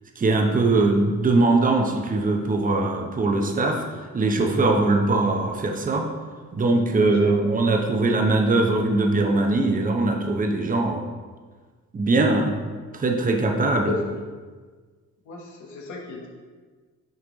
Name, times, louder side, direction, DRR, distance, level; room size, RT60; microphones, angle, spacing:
voice 1, 0.2-3.8 4.1-6.1 6.5-11.0 11.9-12.5 12.9-13.9, right 2 dB, 30° right, 3 dB, 0.8 m, -21 dB
voice 2, 6.9-7.5 13.9-14.0 15.2-16.3, left 5 dB, 75° left, -1 dB, 1.3 m, -35 dB
9.2 x 3.2 x 3.9 m, 1.5 s
cardioid pair, 90°, 30 cm